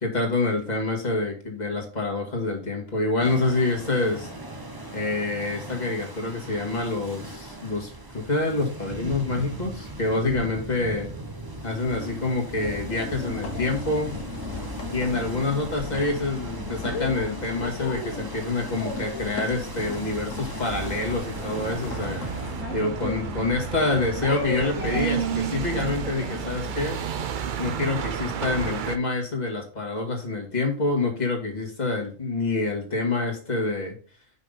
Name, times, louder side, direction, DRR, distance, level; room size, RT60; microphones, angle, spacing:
voice 1, 0.0-4.3 4.9-11.1 11.6-14.2 14.9-22.3 22.7-27.0 27.6-34.0, left 3 dB, 35° left, 0 dB, 2.0 m, -27 dB
sound 1, 3.2-22.6, right 1 dB, 20° right, 0.9 m, -38 dB
sound 2, 12.5-26.9, left 4 dB, 75° left, 1.6 m, -37 dB
sound 3, 20.7-29.0, right 8 dB, 55° right, 0.6 m, -31 dB
5.7 x 5.7 x 5.3 m, 0.40 s
omnidirectional pair, 1.3 m